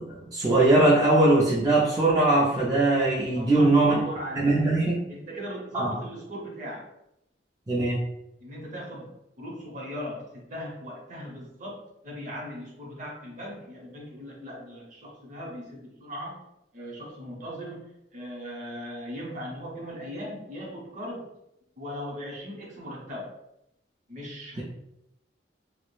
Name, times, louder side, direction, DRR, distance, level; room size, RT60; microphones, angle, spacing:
voice 1, 0.0-4.0 4.3-5.1 5.7-5.9 7.7-8.0, right 2 dB, 20° right, -7 dB, 0.4 m, -21 dB
voice 2, 3.3-4.7 5.1-6.9 8.4-16.4 16.7-21.3 21.8-23.3 24.1-24.6, equal, 45° right, -3 dB, 0.8 m, -38 dB
2.3 x 2.0 x 3.1 m, 0.83 s
head